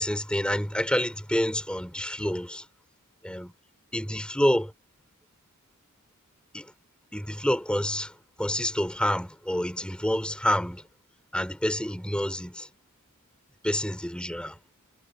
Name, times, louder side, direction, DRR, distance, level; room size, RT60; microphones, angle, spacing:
voice 1, 0.0-2.6 3.2-3.5 3.9-4.7 6.5-6.7 7.1-10.8 11.3-12.7 13.6-14.6, left 1 dB, 5° left, 4.0 m, -28 dB
head